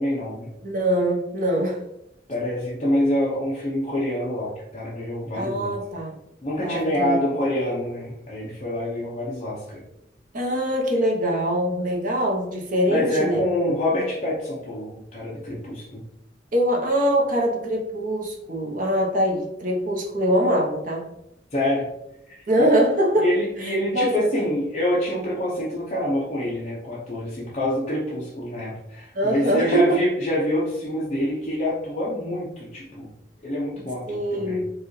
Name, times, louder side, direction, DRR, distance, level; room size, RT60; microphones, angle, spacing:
voice 1, 0.0-0.5 2.3-5.7 6.4-9.8 12.9-16.0 21.5-21.8 22.3-22.4 23.2-33.1 33.4-34.6, left 1 dB, 35° left, -7 dB, 0.7 m, -26 dB
voice 2, 0.6-1.8 5.4-6.1 6.6-7.2 10.3-13.4 16.5-21.1 22.5-24.3 29.1-30.0 34.1-34.7, equal, 45° right, -1 dB, 0.9 m, -23 dB
4.7 x 2.5 x 3.1 m, 0.83 s
head